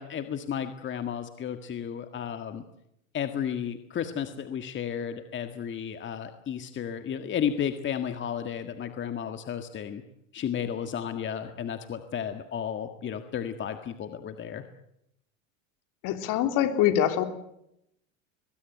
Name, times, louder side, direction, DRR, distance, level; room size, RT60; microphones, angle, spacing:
voice 1, 0.0-2.6 3.1-10.0 10.3-14.6, left 8 dB, 30° left, 8 dB, 1.8 m, -33 dB
voice 2, 16.0-17.2, left 11 dB, 50° left, 8 dB, 3.5 m, -24 dB
22.5 x 21.0 x 9.3 m, 0.80 s
supercardioid pair, 110°, 39 cm